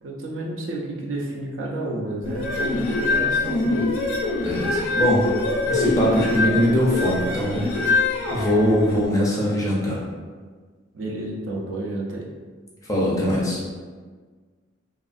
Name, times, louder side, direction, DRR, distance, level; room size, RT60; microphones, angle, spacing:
voice 1, 0.0-4.0 10.9-12.3, right 2 dB, 65° right, -2 dB, 0.5 m, -30 dB
sound 1, 2.3-9.0, left 2 dB, 90° left, 0.5 m, -24 dB
voice 2, 4.4-5.3 5.6-7.7 8.3-10.0 12.9-13.6, equal, 15° left, -5 dB, 0.4 m, -21 dB
2.5 x 2.4 x 2.5 m, 1.5 s
head